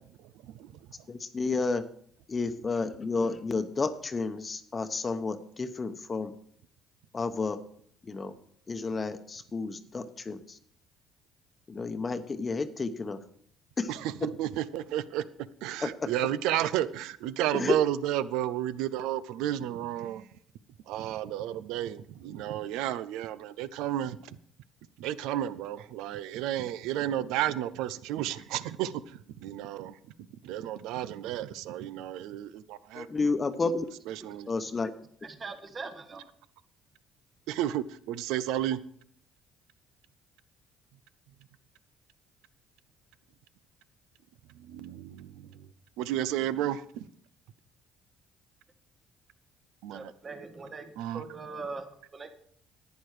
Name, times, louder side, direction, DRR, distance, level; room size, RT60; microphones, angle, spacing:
voice 1, 0.2-0.8 13.9-15.2 15.6-20.3 20.9-24.4 25.0-30.0 30.4-33.3 34.0-34.5 37.5-38.8 44.5-45.7 46.0-47.1 49.8-50.1 51.0-51.2, right 12 dB, 80° right, 0.5 m, -32 dB
voice 2, 1.3-1.8 2.3-6.3 7.1-7.6 8.1-8.3 8.7-10.4 11.7-13.2 13.8-13.9 17.5-17.7 33.0-33.8 34.5-34.9, left 4 dB, 30° left, 0.9 m, -31 dB
voice 3, 34.2-34.7 35.2-36.2 49.9-52.3, right 4 dB, 35° right, 1.4 m, -42 dB
10.5 x 9.3 x 4.9 m
supercardioid pair, 75°, 0 cm